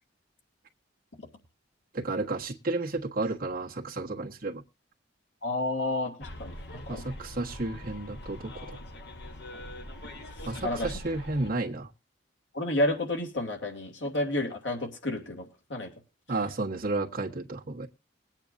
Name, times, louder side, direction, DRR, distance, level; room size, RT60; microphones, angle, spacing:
voice 1, 1.9-4.6 6.9-8.5 10.5-11.9 16.3-17.9, right 2 dB, 50° right, 1.5 m, -32 dB
voice 2, 5.4-7.0 10.6-10.9 12.5-15.9, left 1 dB, 80° left, 2.8 m, -30 dB
Bus, 6.2-11.5, left 1 dB, 60° left, 1.3 m, -42 dB
21.5 x 8.9 x 2.7 m
head